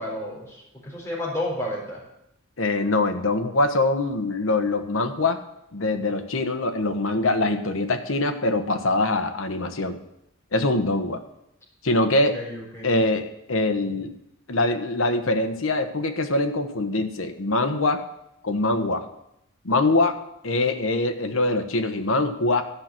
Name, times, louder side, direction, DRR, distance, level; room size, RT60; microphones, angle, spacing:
voice 1, 0.0-2.0 12.1-13.0, left 1 dB, 15° left, -4 dB, 3.9 m, -32 dB
voice 2, 2.6-5.4 5.7-10.0 10.5-11.2 11.8-12.4 12.8-14.1 14.5-18.0 18.4-19.0 19.6-20.2 20.4-22.6, left 2 dB, 80° left, 7 dB, 1.1 m, -23 dB
13.0 x 5.9 x 7.7 m, 0.82 s
head